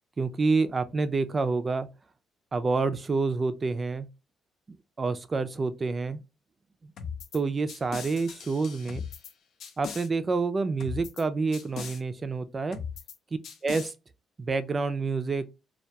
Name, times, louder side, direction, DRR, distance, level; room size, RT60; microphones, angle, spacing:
voice 1, 0.2-1.9 2.5-4.1 5.0-6.2 6.8-6.9 7.3-9.0 9.8-12.8 13.6-13.9 14.4-15.4, right 4 dB, 30° right, 0.3 m, -28 dB
sound 1, 7.0-7.4 7.7-9.3 9.6-10.1 10.8-11.2 11.5-12.0 12.7-13.2 13.4-13.9, left 6 dB, 75° left, 0.4 m, -39 dB
2.3 x 2.2 x 2.7 m
cardioid pair, 90°, 0 cm